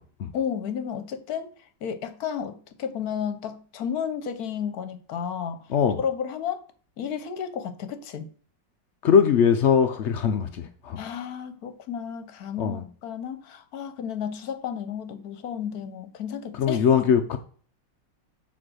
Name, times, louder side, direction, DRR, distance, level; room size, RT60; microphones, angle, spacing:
voice 1, 0.3-1.5 1.8-5.6 6.0-6.6 7.0-8.3 11.0-16.8, left 8 dB, 60° left, 1.2 m, -32 dB
voice 2, 9.0-11.0 12.6-12.8 16.6-17.4, left 7 dB, 85° left, 0.6 m, -21 dB
7.6 x 3.8 x 6.2 m
omnidirectional pair, 2.0 m